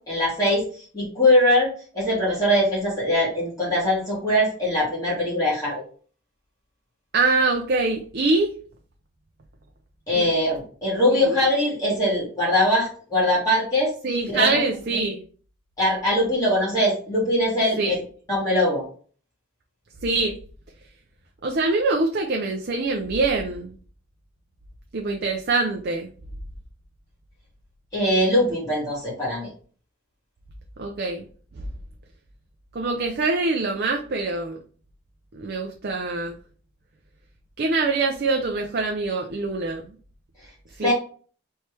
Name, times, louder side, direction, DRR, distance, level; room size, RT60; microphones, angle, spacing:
voice 1, 0.1-0.6 0.9-5.8 10.1-13.9 14.3-14.5 15.8-18.0 18.3-18.8 27.9-29.5 40.8-40.9, left 1 dB, 15° left, -7 dB, 1.9 m, -22 dB
voice 2, 7.1-8.5 10.1-10.3 11.1-11.4 14.0-15.2 17.8-18.0 20.0-20.4 21.4-23.7 24.9-26.1 30.8-31.3 32.7-34.6 35.3-36.4 37.6-39.9 40.8-40.9, right 3 dB, 50° right, 2 dB, 0.5 m, -24 dB
4.2 x 3.2 x 3.3 m, 0.42 s
head